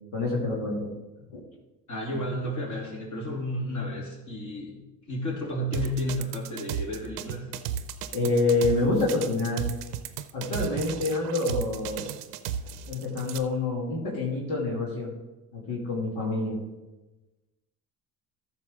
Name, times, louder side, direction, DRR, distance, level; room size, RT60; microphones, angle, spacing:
voice 1, 0.1-0.9 1.3-1.4 8.1-9.7 10.3-12.1 12.9-15.1 15.5-16.6, left 3 dB, 70° left, -4 dB, 2.5 m, -27 dB
voice 2, 1.9-4.8 5.1-7.5, equal, 40° left, -2 dB, 3.1 m, -32 dB
sound 1, 5.7-13.4, right 9 dB, 80° right, 0.7 m, -34 dB
13.5 x 6.0 x 3.6 m, 1.1 s
hypercardioid pair, 60°, 46 cm